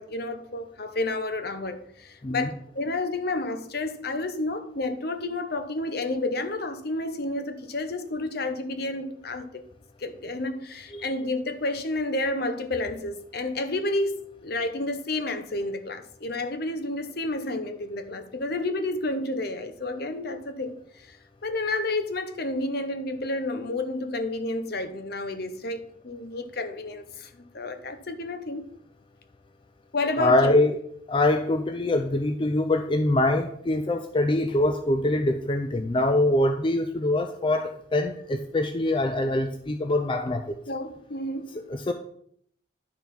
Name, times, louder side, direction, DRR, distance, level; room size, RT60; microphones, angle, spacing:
voice 1, 0.0-9.6 10.0-28.7 29.9-30.6 40.7-41.6, left 2 dB, 55° left, 0.9 m, -30 dB
voice 2, 30.2-30.8 31.1-40.5 41.7-41.9, left 2 dB, 25° left, 0.4 m, -24 dB
10.5 x 4.5 x 5.4 m
head